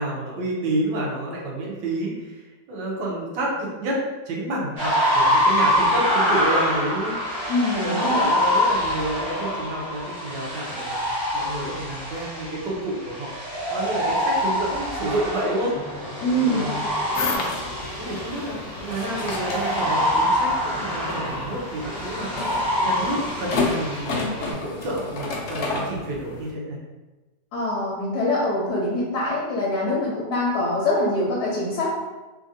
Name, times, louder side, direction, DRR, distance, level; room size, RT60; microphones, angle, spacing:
voice 1, 0.0-11.0 11.3-13.3 13.7-16.7 18.0-22.3 22.8-26.8, right 1 dB, 85° right, -3 dB, 1.3 m, -29 dB
sound 1, 4.8-24.5, equal, 45° right, 1.4 m, -25 dB
voice 2, 7.5-8.3 16.2-16.7 27.5-31.9, left 1 dB, 70° left, -5 dB, 1.1 m, -24 dB
sound 2, 15.7-23.3, left 1 dB, 25° left, 1.2 m, -40 dB
sound 3, 17.1-26.5, left 3 dB, 90° left, 0.6 m, -31 dB
3.2 x 2.5 x 2.6 m, 1.2 s
omnidirectional pair, 1.8 m